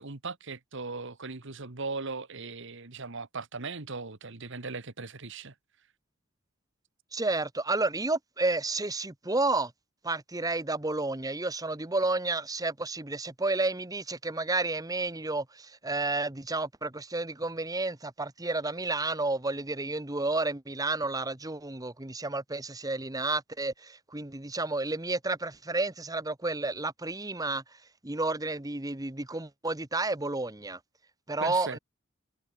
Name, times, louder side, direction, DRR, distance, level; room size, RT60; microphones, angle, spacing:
voice 1, 0.0-5.5 31.4-31.8, right 4 dB, 60° right, 1.6 m, -38 dB
voice 2, 7.1-9.7 10.0-27.6 28.0-30.8 31.3-31.8, right 2 dB, 15° right, 1.3 m, -31 dB
head